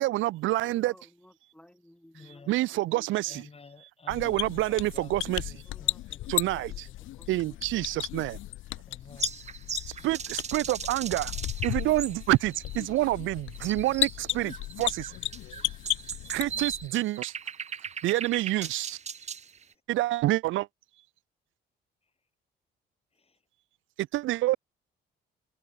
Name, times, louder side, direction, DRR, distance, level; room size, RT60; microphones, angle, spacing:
voice 1, 0.0-0.9 2.5-3.4 4.1-5.6 6.3-6.7 7.3-8.4 10.0-11.3 11.6-15.1 16.2-17.3 18.0-19.0 19.9-20.7 24.0-24.6, right 17 dB, 80° right, 0.5 m, -27 dB
voice 2, 0.6-3.4 5.6-7.9 9.3-10.1, left 1 dB, 5° left, 3.9 m, -58 dB
voice 3, 2.1-2.5 3.3-6.2 6.5-6.9 8.9-9.4 23.1-23.4, left 4 dB, 30° left, 4.6 m, -52 dB
sound 1, 4.1-16.9, left 15 dB, 80° left, 0.8 m, -35 dB
sound 2, 9.2-19.6, right 7 dB, 35° right, 0.7 m, -39 dB
open air
cardioid pair, 90°, 20 cm